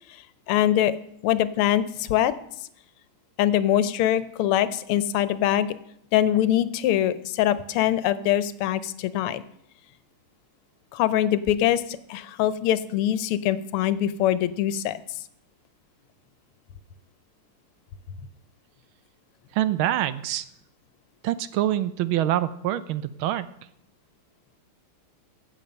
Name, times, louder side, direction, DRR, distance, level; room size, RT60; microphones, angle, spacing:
voice 1, 0.5-0.9 1.2-2.3 3.4-5.7 6.1-9.4 10.9-15.0, left 11 dB, 90° left, 14 dB, 1.6 m, -23 dB
voice 2, 19.5-20.4 21.2-23.4, right 12 dB, 75° right, 14 dB, 1.4 m, -25 dB
16.0 x 7.3 x 5.4 m, 0.73 s
omnidirectional pair, 2.4 m